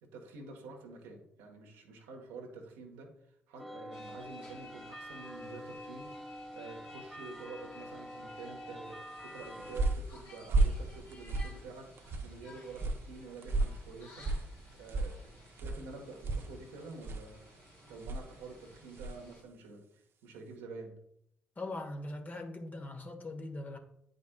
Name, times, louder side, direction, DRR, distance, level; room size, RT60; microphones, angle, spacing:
voice 1, 0.0-3.1 3.5-14.3 14.8-17.4 17.9-21.0, right 3 dB, 85° right, 1.2 m, -48 dB
sound 1, 3.6-10.0, equal, 5° left, 0.5 m, -47 dB
sound 2, 3.9-19.4, left 3 dB, 60° left, 2.1 m, -57 dB
sound 3, 9.2-19.3, right 2 dB, 60° right, 0.7 m, -36 dB
voice 2, 21.6-23.8, left 2 dB, 35° left, 1.1 m, -41 dB
9.4 x 5.1 x 2.3 m
hypercardioid pair, 45°, 5 cm